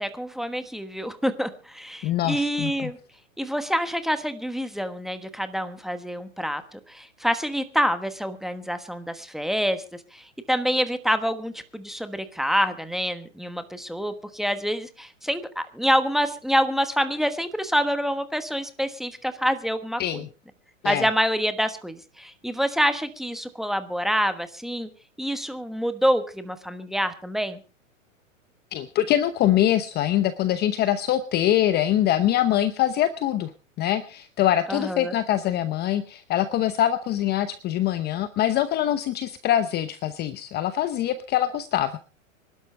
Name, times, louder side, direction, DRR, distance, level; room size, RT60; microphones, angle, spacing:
voice 1, 0.0-3.0 3.4-20.2 20.8-24.9 25.2-27.6 34.7-35.1, equal, ahead, 9 dB, 1.3 m, -27 dB
voice 2, 2.0-2.9 20.0-20.3 20.8-21.1 28.7-33.5 33.8-42.0, left 12 dB, 25° left, 12 dB, 0.8 m, -24 dB
25.5 x 12.0 x 3.3 m, 0.35 s
hypercardioid pair, 135°, 40 cm